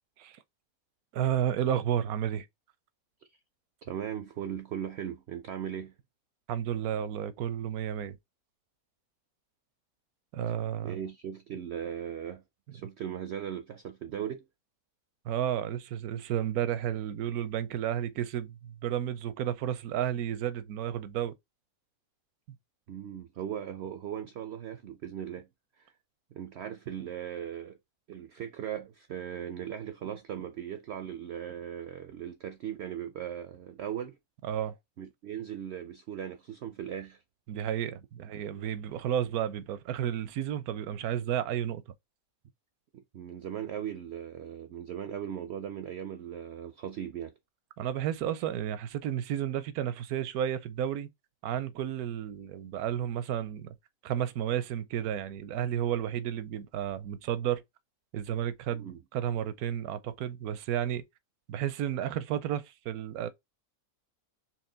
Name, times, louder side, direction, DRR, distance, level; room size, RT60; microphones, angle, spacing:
voice 1, 1.1-2.5 6.5-8.2 10.3-11.0 12.7-12.8 15.2-21.4 34.4-34.7 37.5-41.8 47.8-51.1 51.4-53.7 54.0-57.6 58.1-61.0 61.5-63.3, right 10 dB, 80° right, 1.1 m, -32 dB
voice 2, 3.8-5.9 10.8-12.4 12.7-14.4 22.9-25.5 25.8-25.9 26.3-27.8 28.1-34.2 35.0-37.2 43.1-47.3 58.7-59.0, right 9 dB, 65° right, 0.6 m, -38 dB
4.4 x 3.1 x 3.8 m
omnidirectional pair, 1.6 m